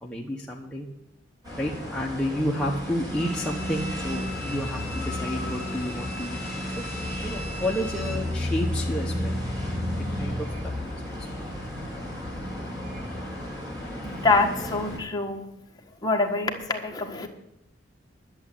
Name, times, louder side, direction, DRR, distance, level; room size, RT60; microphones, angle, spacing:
voice 1, 0.0-0.9 1.5-6.4 6.7-6.8 7.2-9.9 10.2-11.1, equal, 5° left, -3 dB, 1.1 m, -31 dB
sound 1, 1.4-15.0, left 1 dB, 20° right, 4.2 m, -32 dB
Bowed string instrument, 3.1-8.3 8.7-8.8, left 2 dB, 40° right, 4.8 m, -40 dB
voice 2, 14.0-15.5 16.0-17.3, left 3 dB, 20° left, 2 dB, 1.5 m, -25 dB
11.0 x 7.4 x 9.1 m, 0.85 s
head